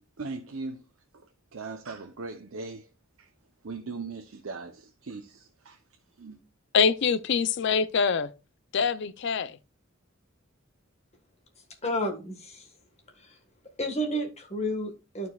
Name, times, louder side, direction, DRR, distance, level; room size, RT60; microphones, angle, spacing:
voice 1, 0.2-0.8 1.1-2.9 3.2-3.3 3.6-5.8 6.2-6.4, right 3 dB, 85° right, 0.7 m, -39 dB
voice 2, 6.7-8.3 8.7-9.6, left 6 dB, 60° left, 0.5 m, -24 dB
voice 3, 11.8-12.7 13.2-13.4 13.8-15.3, equal, 35° left, 1.5 m, -31 dB
12.5 x 4.6 x 2.3 m
head